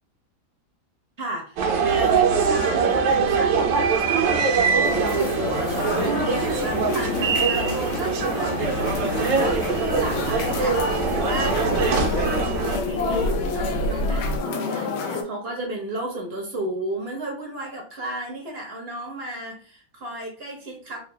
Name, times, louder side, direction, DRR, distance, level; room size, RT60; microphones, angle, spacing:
voice 1, 1.2-12.1 12.6-21.0, right 1 dB, 45° right, -1 dB, 0.8 m, -34 dB
sound 1, 1.6-12.8, right 5 dB, 75° right, 1.4 m, -23 dB
sound 2, 4.8-15.2, left 4 dB, 90° left, 1.4 m, -29 dB
sound 3, 8.1-14.4, right 1 dB, 75° left, 1.2 m, -32 dB
3.9 x 2.3 x 3.3 m, 0.43 s
omnidirectional pair, 2.1 m